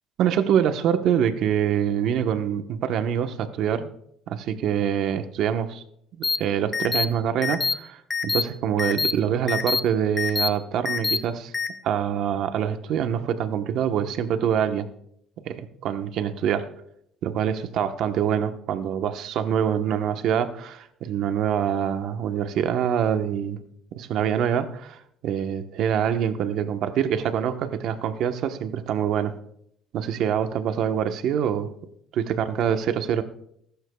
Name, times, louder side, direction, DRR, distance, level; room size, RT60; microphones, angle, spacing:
voice 1, 0.2-3.9 4.3-5.8 6.1-11.5 11.8-14.9 15.4-16.7 17.2-23.6 23.9-29.3 29.9-31.7 32.1-33.2, right 9 dB, 70° right, 8 dB, 1.1 m, -25 dB
sound 1, 6.2-6.4 6.7-7.1 7.4-7.7 8.1-8.4 8.8-9.1 9.5-9.8 10.2-10.5 10.9-11.2 11.5-11.7, left 4 dB, 25° left, 0.9 m, -24 dB
21.5 x 11.5 x 2.3 m, 0.71 s
cardioid pair, 105°, 0 cm